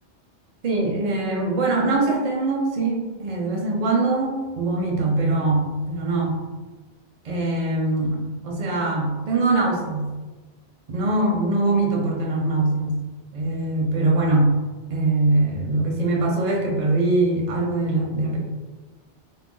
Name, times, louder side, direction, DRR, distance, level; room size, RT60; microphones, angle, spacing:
voice 1, 0.6-6.4 7.2-10.1 10.9-13.0 13.3-14.6 14.9-18.4, right 2 dB, 45° right, -1 dB, 0.5 m, -22 dB
2.3 x 2.2 x 3.6 m, 1.3 s
omnidirectional pair, 1.1 m